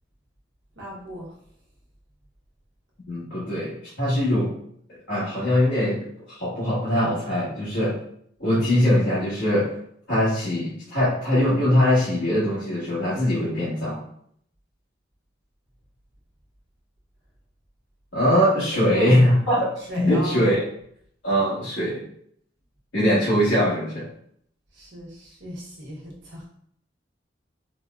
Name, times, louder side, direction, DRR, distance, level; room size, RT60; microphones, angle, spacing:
voice 1, 0.8-1.3 18.7-19.2 19.9-20.6 24.7-26.5, right 1 dB, 75° right, -3 dB, 1.0 m, -36 dB
voice 2, 3.1-4.5 5.1-7.9 8.4-9.7 10.1-14.0 18.1-19.6 20.0-20.7 21.2-22.0 22.9-24.0, equal, 70° left, -12 dB, 1.2 m, -22 dB
4.3 x 2.0 x 2.3 m, 0.67 s
head